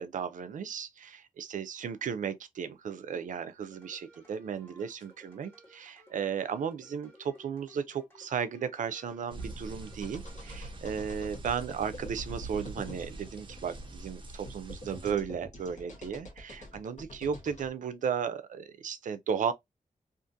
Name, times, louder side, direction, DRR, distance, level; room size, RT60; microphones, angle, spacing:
voice 1, 0.0-19.5, right 7 dB, 80° right, 0.4 m, -35 dB
sound 1, 3.7-10.6, equal, 15° left, 1.4 m, -58 dB
sound 2, 9.3-15.1, right 2 dB, 40° right, 0.6 m, -45 dB
sound 3, 10.0-17.7, equal, 65° left, 1.0 m, -46 dB
2.5 x 2.4 x 2.5 m
wide cardioid pair, 80°, 13 cm